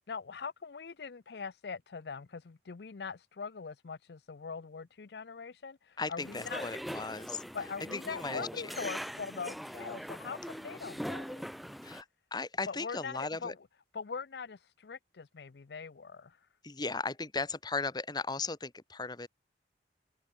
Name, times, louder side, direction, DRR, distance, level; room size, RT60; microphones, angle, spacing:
voice 1, 0.0-6.7 7.5-11.4 12.7-13.6 13.9-16.4, left 5 dB, 65° left, 0.5 m, -42 dB
voice 2, 6.0-7.4 7.9-8.9 11.8-12.0 12.3-13.5 16.6-19.3, left 3 dB, 25° left, 1.2 m, -37 dB
sound 1, 6.2-12.0, equal, ahead, 0.9 m, -42 dB
head